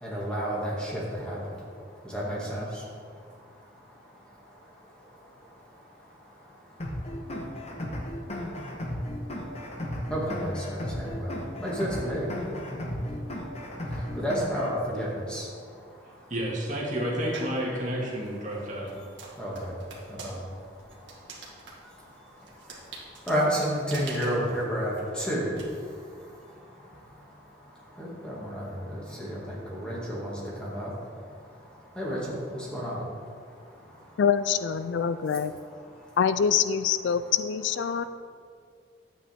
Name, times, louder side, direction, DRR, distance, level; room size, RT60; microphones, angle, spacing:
voice 1, 0.0-1.4 2.1-2.7 10.1-11.3 11.6-12.3 14.2-15.4 19.4-19.7 20.2-20.3 23.3-25.5 28.0-28.6 29.2-30.3 30.6-30.9 32.0-32.2 32.7-32.9, equal, 5° left, -6 dB, 2.1 m, -30 dB
sound 1, 6.8-14.8, left 1 dB, 35° left, 1.2 m, -35 dB
voice 2, 16.3-19.0, equal, 40° right, -4 dB, 2.1 m, -30 dB
sound 2, 17.3-17.6 18.2-25.6, right 4 dB, 70° right, 1.8 m, -45 dB
voice 3, 34.2-35.5 36.2-38.0, left 7 dB, 65° left, 12 dB, 0.3 m, -25 dB
11.0 x 8.5 x 3.6 m, 2.2 s
head